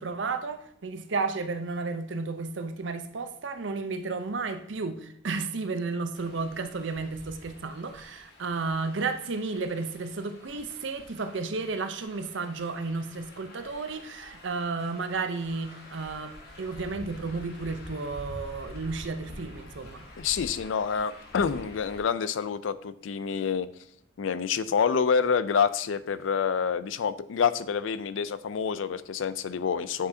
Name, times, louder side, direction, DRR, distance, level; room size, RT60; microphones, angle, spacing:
voice 1, 0.0-20.1, right 4 dB, 70° right, 9 dB, 0.6 m, -33 dB
sound 1, 6.1-22.0, left 1 dB, 55° left, 1.3 m, -47 dB
voice 2, 20.2-23.7 24.2-30.1, left 6 dB, 80° left, 15 dB, 0.4 m, -27 dB
8.8 x 4.9 x 2.7 m, 0.69 s
head